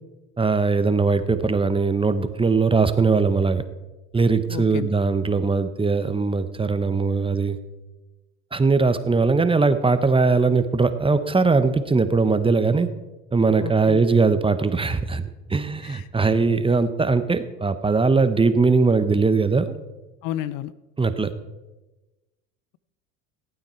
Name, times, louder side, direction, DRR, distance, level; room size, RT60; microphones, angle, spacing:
voice 1, 0.4-3.6 4.1-7.6 8.5-12.9 13.3-19.7 21.0-21.3, right 4 dB, 15° right, 10 dB, 0.9 m, -20 dB
voice 2, 4.5-4.9 13.6-14.0 15.8-16.1 20.2-20.7, left 12 dB, 65° left, 17 dB, 0.6 m, -31 dB
16.0 x 8.9 x 4.4 m, 1.1 s
supercardioid pair, 85°, 37 cm